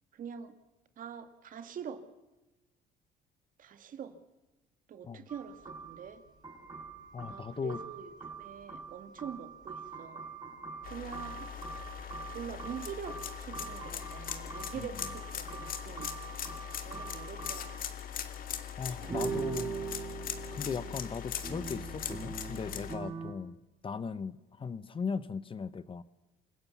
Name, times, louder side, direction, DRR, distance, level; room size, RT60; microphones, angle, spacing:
voice 1, 0.1-0.5 1.0-2.0 3.6-4.2 4.9-6.2 7.3-10.3 10.8-11.5 12.3-16.1 16.8-17.9 19.0-19.3 19.7-19.8 20.7-21.0, right 7 dB, 55° right, 9 dB, 2.2 m, -44 dB
sound 1, 5.3-18.0 18.7-18.8 19.1-23.3, right 5 dB, 25° right, 5.3 m, -43 dB
voice 2, 7.1-7.8 14.8-14.9 18.8-19.8 20.5-23.6 23.8-26.0, left 5 dB, 30° left, 15 dB, 0.9 m, -38 dB
sound 2, 10.8-23.0, left 9 dB, 55° left, 2.2 m, -41 dB
27.5 x 16.0 x 7.1 m, 1.0 s
cardioid pair, 110°, 17 cm